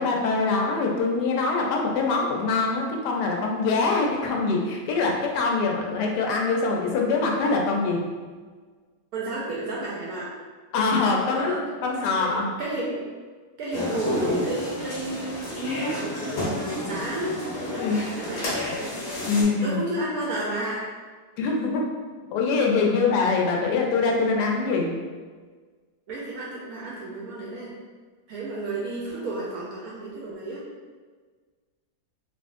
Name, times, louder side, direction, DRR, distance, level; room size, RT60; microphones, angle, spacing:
voice 1, 0.0-8.0 10.7-11.5 11.8-12.5 17.7-18.0 19.2-19.8 21.4-21.9 22.3-24.9, left 4 dB, 85° left, 0 dB, 1.1 m, -24 dB
voice 2, 9.1-10.3 11.2-11.6 12.2-13.1 13.6-18.6 19.6-20.8 26.1-27.7 28.3-30.6, right 2 dB, 70° right, -5 dB, 1.0 m, -32 dB
sound 1, 13.7-19.4, left 1 dB, 65° left, 1.3 m, -30 dB
3.3 x 2.4 x 2.4 m, 1.5 s
omnidirectional pair, 1.7 m